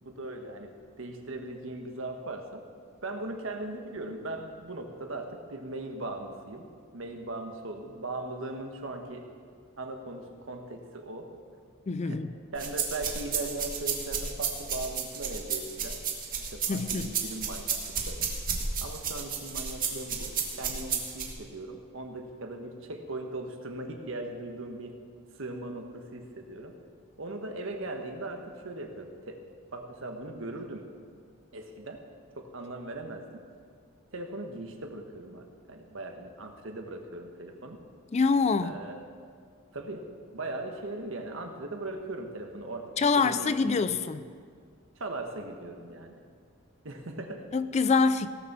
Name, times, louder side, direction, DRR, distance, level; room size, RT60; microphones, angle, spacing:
voice 1, 0.0-2.6 3.0-9.3 9.8-11.3 12.0-12.2 12.5-16.0 16.5-18.2 18.8-25.0 25.4-26.8 27.2-29.4 29.7-30.9 31.5-32.0 32.4-33.4 34.1-37.8 38.6-39.1 39.7-43.8 45.0-46.2 46.8-47.5, right 2 dB, 65° right, 4 dB, 1.3 m, -39 dB
voice 2, 11.9-12.3 16.7-17.1 38.1-38.8 43.0-44.3 47.5-48.3, left 4 dB, 30° left, 12 dB, 0.3 m, -25 dB
sound 1, 12.6-21.3, right 7 dB, 45° right, 1.6 m, -32 dB
17.5 x 6.9 x 6.0 m, 2.1 s
head